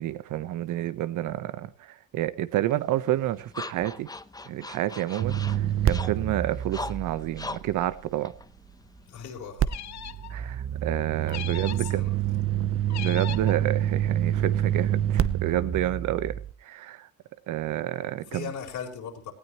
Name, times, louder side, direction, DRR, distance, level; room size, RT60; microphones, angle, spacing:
voice 1, 0.0-4.1 4.5-8.3 10.3-12.0 13.0-17.1 17.5-18.5, right 13 dB, 85° right, 1.0 m, -29 dB
sound 1, 2.7-9.2, left 2 dB, 10° left, 0.8 m, -41 dB
sound 2, 5.2-8.4 9.6-16.5, right 10 dB, 45° right, 0.8 m, -27 dB
voice 2, 9.1-9.8 11.6-12.1 18.3-19.3, left 7 dB, 80° left, 4.1 m, -38 dB
sound 3, 9.7-10.3 11.3-12.0 12.9-13.6, left 12 dB, 65° left, 0.8 m, -38 dB
18.5 x 16.5 x 3.0 m
cardioid pair, 90°, 30 cm